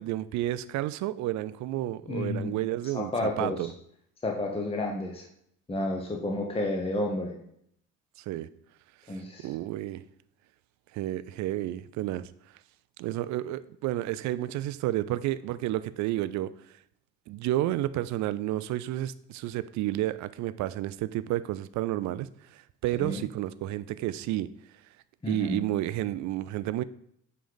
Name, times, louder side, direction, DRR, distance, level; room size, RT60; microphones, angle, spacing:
voice 1, 0.0-3.7 8.3-8.5 9.1-10.0 10.9-12.3 13.0-16.5 17.3-22.3 22.5-24.5 25.3-26.8, right 14 dB, 50° right, 0.4 m, -31 dB
voice 2, 2.1-2.5 2.9-3.7 4.2-5.2 5.7-7.4 9.1-9.5 23.0-23.2 25.2-25.6, left 2 dB, 15° left, 0.9 m, -31 dB
7.4 x 3.3 x 3.9 m
figure-of-eight pair, 50°, 39 cm